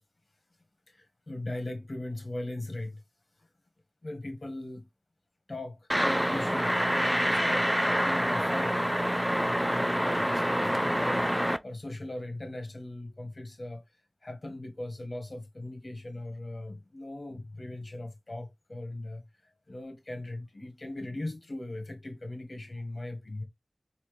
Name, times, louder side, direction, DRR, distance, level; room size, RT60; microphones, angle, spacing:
voice 1, 0.9-3.0 4.0-4.9 5.5-9.0 9.5-13.8 14.2-23.4, left 1 dB, 55° left, 1.4 m, -39 dB
sound 1, 5.9-11.6, equal, 5° right, 0.4 m, -27 dB
4.0 x 2.8 x 3.2 m
wide cardioid pair, 45°, 0 cm